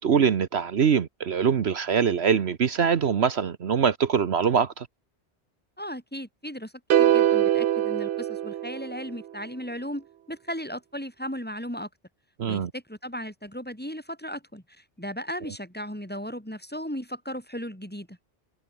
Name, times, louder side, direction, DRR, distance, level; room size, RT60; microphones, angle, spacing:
voice 1, 0.0-4.9 12.4-12.7, right 7 dB, 65° right, 1.3 m, -23 dB
voice 2, 5.8-6.7 7.0-11.9 12.5-18.2, equal, 10° left, 3.8 m, -36 dB
sound 1, 6.9-9.2, right 11 dB, 90° right, 1.0 m, -23 dB
omnidirectional pair, 1.2 m